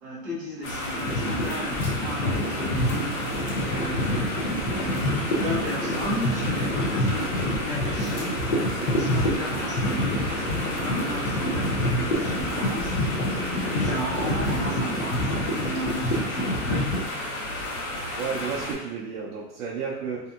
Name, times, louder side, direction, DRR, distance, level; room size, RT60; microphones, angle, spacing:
voice 1, 0.0-3.2 3.6-4.3 4.7-8.4 8.9-13.1 13.5-17.0, equal, 15° right, -8 dB, 0.4 m, -34 dB
sound 1, 0.6-18.7, left 1 dB, 60° left, 1.0 m, -33 dB
sound 2, 0.9-17.0, left 1 dB, 40° left, 0.5 m, -28 dB
sound 3, 2.5-15.0, equal, 15° left, 0.8 m, -36 dB
voice 2, 18.2-20.3, right 5 dB, 60° right, -6 dB, 0.6 m, -32 dB
2.7 x 2.5 x 2.3 m, 0.97 s
hypercardioid pair, 145°, 47 cm